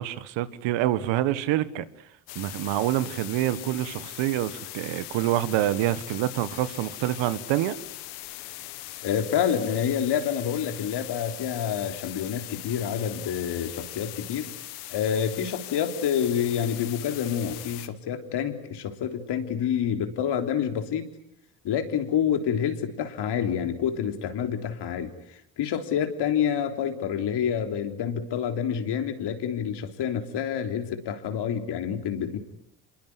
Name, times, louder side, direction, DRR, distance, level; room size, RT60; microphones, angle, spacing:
voice 1, 0.0-1.9 2.4-7.8, right 14 dB, 70° right, 1.7 m, -26 dB
sound 1, 2.3-17.9, left 17 dB, 80° left, 1.8 m, -40 dB
voice 2, 9.0-14.5 14.9-21.1 21.6-32.4, left 8 dB, 60° left, 3.6 m, -28 dB
26.5 x 22.5 x 9.7 m
hypercardioid pair, 70°, 46 cm